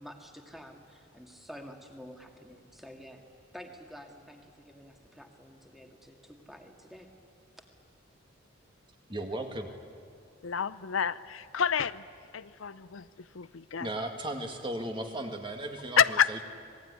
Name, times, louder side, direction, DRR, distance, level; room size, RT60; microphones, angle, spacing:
voice 1, 0.0-3.2 3.5-7.1, equal, ahead, 3 dB, 2.2 m, -49 dB
voice 2, 9.1-9.7 13.8-16.4, right 1 dB, 25° right, 4 dB, 2.0 m, -36 dB
voice 3, 10.4-12.0 12.3-13.1 13.3-13.9 16.0-16.3, left 8 dB, 80° left, 15 dB, 0.6 m, -28 dB
26.5 x 19.0 x 9.8 m, 2.3 s
head